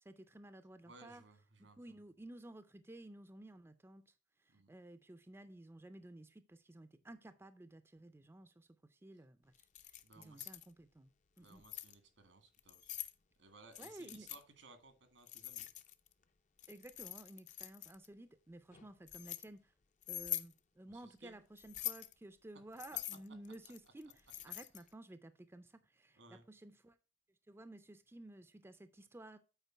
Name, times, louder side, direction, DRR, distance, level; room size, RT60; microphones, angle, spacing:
voice 1, 0.0-1.2 1.6-4.1 4.4-11.1 11.4-11.6 13.8-14.3 16.7-19.7 20.1-27.0 27.5-29.4, right 1 dB, 15° right, 0.4 m, -54 dB
voice 2, 0.9-1.8 4.5-4.7 10.0-10.5 11.4-13.0 13.4-15.7 20.9-21.4 26.2-26.4, right 3 dB, 85° right, 1.7 m, -60 dB
Keys jangling, 9.6-10.7 11.4-11.9 12.6-13.1 13.7-14.4 15.3-16.1 16.6-18.1 18.7-19.4 20.0-20.5 21.6-22.1 22.8-24.9, left 13 dB, 40° left, 0.5 m, -44 dB
8.1 x 4.6 x 4.5 m
head